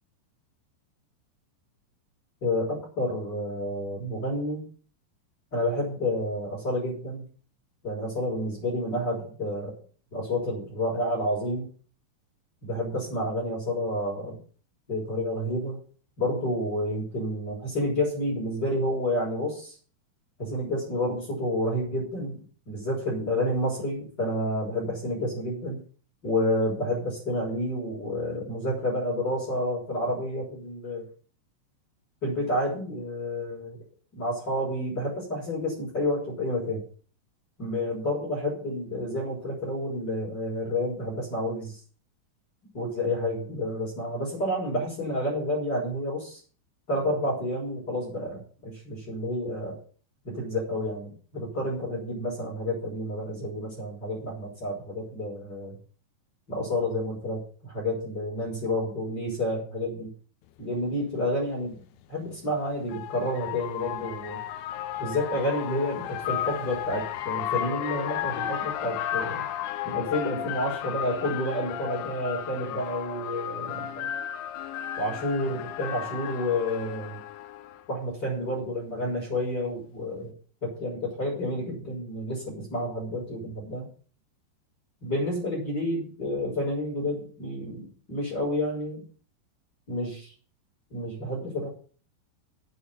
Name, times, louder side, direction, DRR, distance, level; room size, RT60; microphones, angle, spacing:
voice 1, 2.4-4.6 5.5-7.3 7.8-9.8 10.1-11.7 12.6-14.4 14.9-15.8 16.2-19.7 20.4-25.8 26.2-31.1 32.2-33.8 34.1-36.8 37.6-41.8 42.7-46.4 46.9-49.8 50.2-55.8 56.5-60.1 60.6-61.8 62.1-64.4 65.0-69.4 69.8-74.1 75.0-77.2 77.9-80.3 80.6-83.9 85.0-89.0 89.9-90.3 90.9-91.7, left 1 dB, 20° left, -6 dB, 6.8 m, -30 dB
sound 1, 60.7-60.8 62.2-77.8, left 11 dB, 85° left, 3.3 m, -34 dB
9.0 x 9.0 x 9.5 m, 0.43 s
omnidirectional pair, 5.3 m